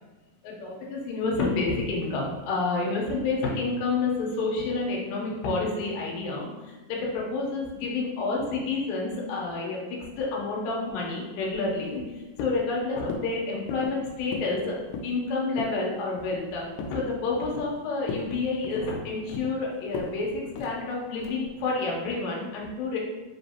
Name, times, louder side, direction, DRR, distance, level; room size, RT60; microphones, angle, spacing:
voice 1, 0.4-9.8 10.2-12.0 12.4-14.8 15.0-16.6 16.9-23.0, left 3 dB, 75° left, -2 dB, 2.4 m, -29 dB
sound 1, 11.5-12.1 12.4-12.7 13.1-13.3 13.7-14.0 14.3-14.6 14.8-15.2 15.6-15.8 16.2-17.0 17.4-17.8 18.1-18.3 18.6-19.5 19.9-20.2 20.6-20.8 21.2-21.5, left 4 dB, 90° left, 2.4 m, -37 dB
5.5 x 3.0 x 2.8 m, 1.2 s
omnidirectional pair, 4.3 m